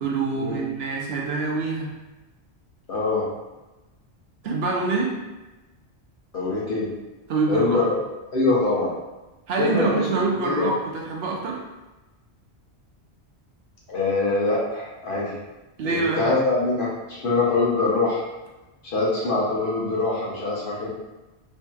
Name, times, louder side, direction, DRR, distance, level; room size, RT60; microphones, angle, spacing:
voice 1, 0.0-1.9 4.4-5.1 7.3-7.8 9.5-10.7 11.1-11.6 15.8-16.3, right 4 dB, 70° right, -2 dB, 0.8 m, -25 dB
voice 2, 2.9-3.3 6.3-6.9 7.5-8.0 8.3-8.9 9.6-10.7 13.9-15.4 15.8-18.2 18.8-20.9, left 3 dB, 55° left, -5 dB, 0.8 m, -24 dB
2.6 x 2.6 x 2.2 m, 1.1 s
omnidirectional pair, 1.1 m